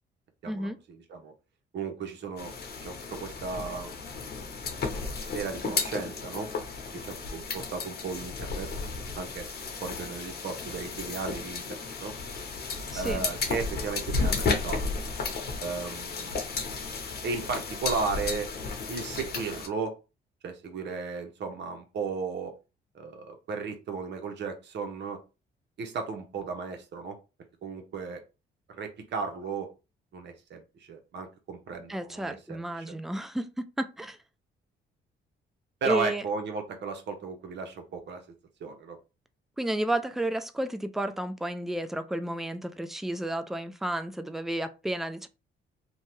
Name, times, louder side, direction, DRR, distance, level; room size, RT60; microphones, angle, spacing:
voice 1, 0.4-1.3 1.7-4.3 5.2-6.5 6.9-8.7 9.1-9.5 9.8-12.1 12.9-14.8 15.6-16.9 17.2-18.5 18.9-20.0 20.4-22.5 22.9-25.2 25.8-27.2 27.6-28.2 28.7-29.7 30.1-32.9 35.8-38.2 38.6-39.0, right 4 dB, 60° right, 0.8 m, -35 dB
sound 1, 2.4-19.7, left 4 dB, 55° left, 0.9 m, -33 dB
voice 2, 12.9-13.3 31.9-34.2 35.8-36.2 39.6-45.3, right 1 dB, ahead, 0.3 m, -32 dB
2.7 x 2.2 x 3.0 m
cardioid pair, 90°, 20 cm